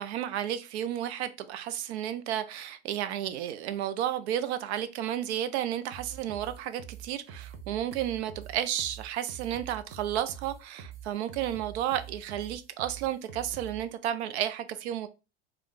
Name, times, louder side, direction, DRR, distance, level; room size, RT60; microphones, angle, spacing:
voice 1, 0.0-15.1, right 11 dB, 75° right, 0.5 m, -32 dB
sound 1, 5.9-13.8, right 8 dB, 40° right, 0.7 m, -45 dB
2.4 x 2.3 x 3.5 m
supercardioid pair, 115°, 33 cm